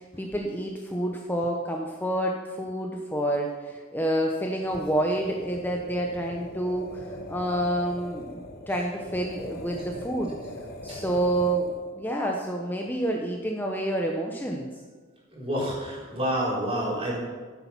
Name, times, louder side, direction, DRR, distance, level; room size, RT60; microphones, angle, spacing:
voice 1, 0.0-8.4 8.7-14.7, right 1 dB, 10° left, 1 dB, 0.8 m, -28 dB
sound 1, 4.6-11.9, left 1 dB, 50° left, 1.2 m, -41 dB
voice 2, 15.3-17.2, equal, 30° right, -5 dB, 4.0 m, -28 dB
13.5 x 8.7 x 5.7 m, 1.5 s
head